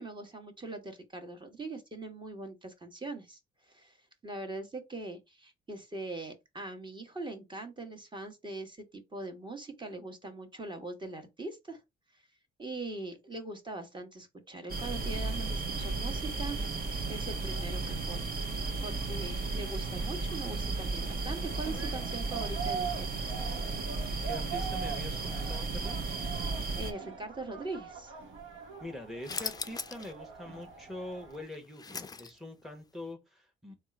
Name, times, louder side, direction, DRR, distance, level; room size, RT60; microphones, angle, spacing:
voice 1, 0.0-3.4 3.7-4.0 4.2-11.8 12.6-16.6 17.1-18.2 18.5-23.5 26.8-28.1, right 2 dB, 25° right, 1.2 m, -41 dB
sound 1, 14.7-26.9, right 3 dB, 50° right, 1.1 m, -34 dB
sound 2, 21.2-31.4, right 7 dB, 75° right, 1.3 m, -43 dB
voice 2, 24.2-26.0 28.8-33.7, left 1 dB, ahead, 0.9 m, -44 dB
sound 3, 29.2-30.1 30.5-30.6 31.3-32.6, left 4 dB, 20° left, 0.4 m, -39 dB
3.5 x 2.5 x 4.3 m
cardioid pair, 90°, 20 cm